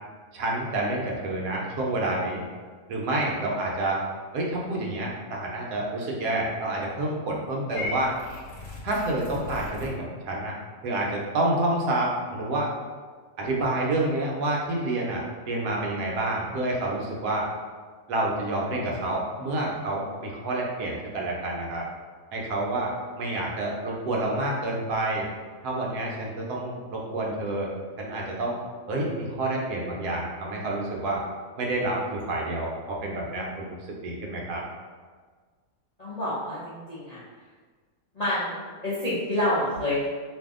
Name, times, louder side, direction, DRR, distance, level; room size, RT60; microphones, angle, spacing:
voice 1, 0.3-2.5 2.9-4.0 4.3-8.1 8.8-10.6 10.8-12.7 13.4-17.5 18.1-21.8 22.3-22.9 23.2-25.2 25.6-28.6 28.9-31.2 31.6-34.6, right 2 dB, 75° right, -2 dB, 1.2 m, -28 dB
Purr / Meow, 7.7-9.9, left 2 dB, 85° left, 1.3 m, -37 dB
voice 2, 36.0-37.2 38.1-40.1, left 1 dB, 50° left, -11 dB, 0.4 m, -28 dB
2.7 x 2.6 x 3.5 m, 1.5 s
omnidirectional pair, 1.8 m